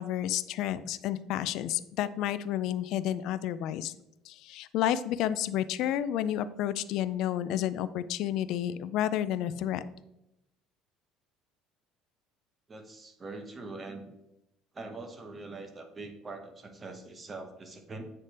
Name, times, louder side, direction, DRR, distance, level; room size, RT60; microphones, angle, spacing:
voice 1, 0.0-3.9 4.2-9.8, left 11 dB, 65° left, 15 dB, 0.3 m, -31 dB
voice 2, 12.7-14.1 14.7-18.0, right 3 dB, 25° right, 6 dB, 0.9 m, -43 dB
8.2 x 3.3 x 4.2 m, 0.87 s
cardioid pair, 120°, 0 cm